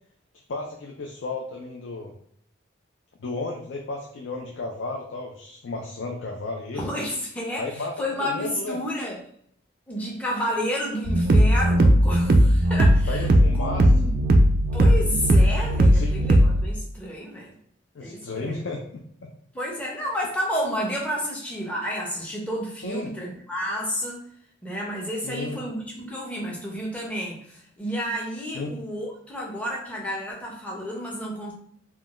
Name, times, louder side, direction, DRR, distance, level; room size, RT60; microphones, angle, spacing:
voice 1, 0.5-2.1 3.2-6.9 7.6-8.8 13.1-13.8 15.9-16.1 17.9-19.3 22.8-23.1 25.2-25.6 28.5-28.7, left 3 dB, 70° left, 0 dB, 0.4 m, -33 dB
voice 2, 6.7-9.2 9.9-13.3 13.6-14.1 14.7-17.5 18.0-18.6 19.5-24.2 24.6-31.5, equal, 5° left, -3 dB, 0.6 m, -31 dB
sound 1, 11.1-16.7, right 1 dB, 45° right, 0.3 m, -18 dB
3.6 x 2.2 x 2.4 m, 0.64 s
head